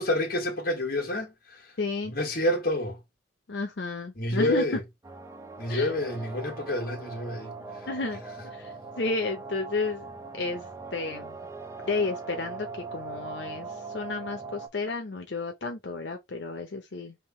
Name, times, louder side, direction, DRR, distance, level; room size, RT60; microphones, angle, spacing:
voice 1, 0.0-1.7 2.0-3.0 4.2-4.8 5.6-7.9, left 1 dB, 55° left, 1.6 m, -29 dB
voice 2, 1.8-2.1 3.5-4.8 5.7-5.9 7.9-10.1 10.3-11.4 11.8-17.2, left 3 dB, 90° left, 0.8 m, -32 dB
sound 1, 5.0-14.7, right 4 dB, 15° right, 0.7 m, -41 dB
3.6 x 2.7 x 4.3 m
head